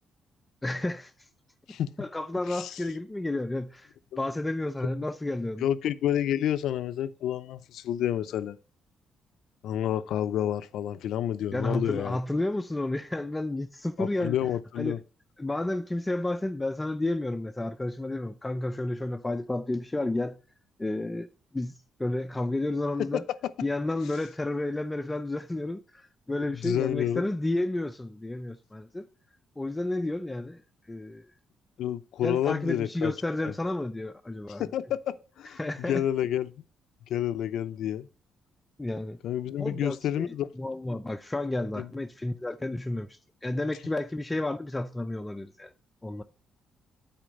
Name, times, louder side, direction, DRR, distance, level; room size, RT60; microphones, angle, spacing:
voice 1, 0.6-1.3 2.0-3.9 4.2-5.7 11.5-14.4 14.8-15.0 15.4-20.4 20.8-21.3 21.5-23.2 23.6-29.1 29.6-30.6 30.9-31.3 32.2-34.7 35.6-36.0 38.8-39.2 39.6-45.7 46.0-46.2, left 2 dB, 15° left, 0.5 m, -31 dB
voice 2, 2.5-2.8 4.1-4.2 5.6-8.6 9.6-12.2 14.0-15.0 26.6-27.2 31.8-33.1 33.4-33.5 34.6-36.5 37.1-38.1 39.2-40.5 41.8-41.9, left 11 dB, 80° left, 0.5 m, -29 dB
9.1 x 4.3 x 5.2 m
cardioid pair, 90°, 0 cm